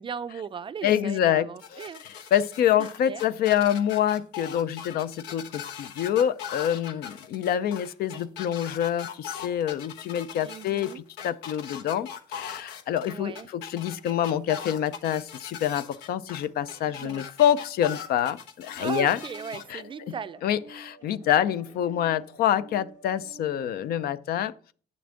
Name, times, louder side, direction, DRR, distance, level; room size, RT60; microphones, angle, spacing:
voice 1, 0.0-2.3 2.8-3.2 10.4-11.0 13.1-13.5 16.8-17.2 18.8-20.4, right 7 dB, 30° right, 0.4 m, -38 dB
voice 2, 0.8-1.8 2.3-19.2 19.7-19.8 20.4-24.7, left 10 dB, 65° left, 0.5 m, -26 dB
sound 1, 1.6-19.6, left 8 dB, 90° left, 1.1 m, -40 dB
sound 2, 18.6-24.1, equal, 45° left, 1.3 m, -50 dB
8.7 x 6.9 x 3.7 m
cardioid pair, 110°, 17 cm